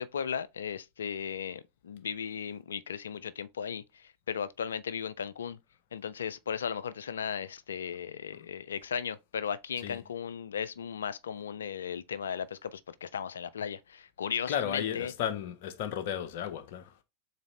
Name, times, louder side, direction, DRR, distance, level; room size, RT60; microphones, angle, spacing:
voice 1, 0.0-5.6 5.9-15.1, left 7 dB, 80° left, 0.3 m, -36 dB
voice 2, 14.5-17.0, left 9 dB, 60° left, 0.8 m, -34 dB
4.0 x 3.9 x 3.1 m
hypercardioid pair, 90°, 0 cm